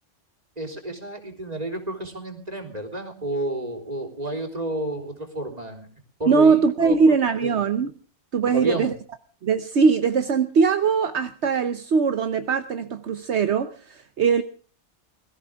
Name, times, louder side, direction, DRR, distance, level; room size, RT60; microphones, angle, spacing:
voice 1, 0.6-5.9 6.2-7.1 7.4-7.6 8.5-8.9, right 1 dB, 35° right, 5 dB, 3.7 m, -31 dB
voice 2, 6.3-7.9 8.3-8.9 9.4-14.4, right 5 dB, 70° right, 9 dB, 1.3 m, -21 dB
21.5 x 15.0 x 3.6 m, 0.39 s
omnidirectional pair, 1.2 m